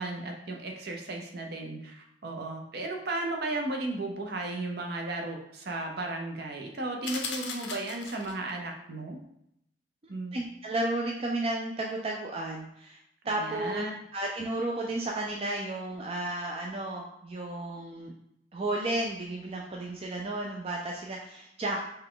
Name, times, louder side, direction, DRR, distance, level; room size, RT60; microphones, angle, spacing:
voice 1, 0.0-9.2 10.1-10.4 13.3-13.9, right 2 dB, 60° right, 2 dB, 0.8 m, -35 dB
sound 1, 7.0-8.5, left 5 dB, 85° left, 0.6 m, -37 dB
voice 2, 10.3-13.0 13.2-13.9 14.1-18.1 18.5-21.8, right 2 dB, 35° right, -1 dB, 0.4 m, -33 dB
5.4 x 2.3 x 3.7 m, 0.76 s
head